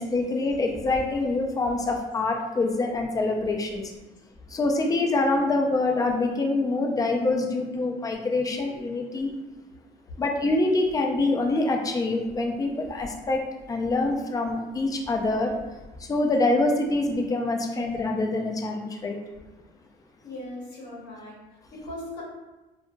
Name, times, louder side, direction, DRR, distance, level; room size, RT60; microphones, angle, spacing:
voice 1, 0.0-3.9 4.5-9.3 10.2-13.4 13.7-15.5 16.0-19.2, left 2 dB, 20° left, 2 dB, 0.4 m, -25 dB
voice 2, 20.2-22.2, left 1 dB, 80° left, -5 dB, 1.1 m, -39 dB
2.7 x 2.6 x 2.4 m, 1.1 s
cardioid pair, 110°, 17 cm